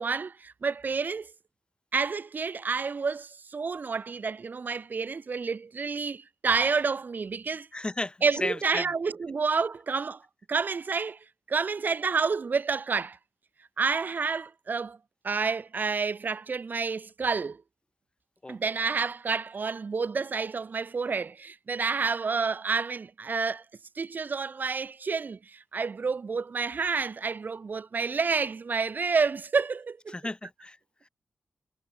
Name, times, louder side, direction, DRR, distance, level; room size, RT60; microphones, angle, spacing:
voice 1, 0.0-1.3 1.9-7.7 8.2-10.2 10.5-11.2 11.5-13.2 13.8-15.0 15.2-17.6 18.5-23.6 24.0-30.1, right 5 dB, 60° right, 2.2 m, -29 dB
voice 2, 7.7-8.9 18.4-18.6 30.1-30.8, left 2 dB, 25° left, 3.2 m, -34 dB
supercardioid pair, 40°, 4 cm